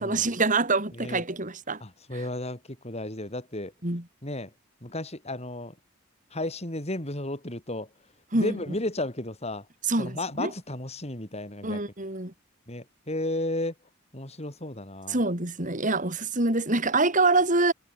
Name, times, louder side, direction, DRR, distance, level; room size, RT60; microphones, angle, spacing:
voice 1, 0.0-1.8 2.1-2.2 3.8-4.0 8.3-8.5 9.9-10.5 11.6-12.3 15.1-17.7, right 3 dB, 35° right, 3.5 m, -25 dB
voice 2, 0.9-1.2 1.8-3.7 4.2-4.5 4.8-5.7 6.3-7.9 8.3-9.7 10.0-11.8 12.7-13.7 14.1-15.2, left 1 dB, 30° left, 4.2 m, -33 dB
head